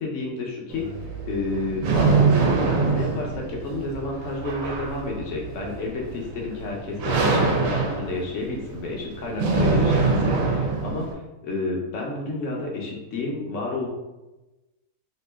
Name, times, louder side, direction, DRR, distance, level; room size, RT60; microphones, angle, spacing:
voice 1, 0.0-0.8 1.2-13.9, left 2 dB, 70° left, -1 dB, 1.0 m, -30 dB
sound 1, 0.7-11.1, right 4 dB, 80° right, 1.1 m, -24 dB
2.9 x 2.6 x 3.3 m, 1.1 s
omnidirectional pair, 1.4 m